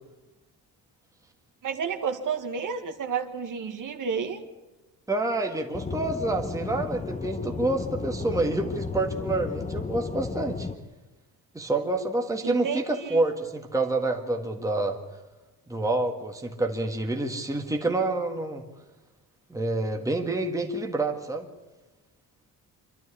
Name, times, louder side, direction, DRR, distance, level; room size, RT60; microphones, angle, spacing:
voice 1, 1.6-4.4 12.4-13.2, right 6 dB, 55° right, 6 dB, 2.0 m, -31 dB
voice 2, 5.1-10.7 11.5-15.0 15.7-18.6 19.5-21.5, right 2 dB, 10° right, 2 dB, 1.7 m, -28 dB
Aircraft / Engine, 5.7-10.7, left 4 dB, 20° left, 1.1 m, -33 dB
26.0 x 12.5 x 8.6 m, 1.1 s
cardioid pair, 140°, 38 cm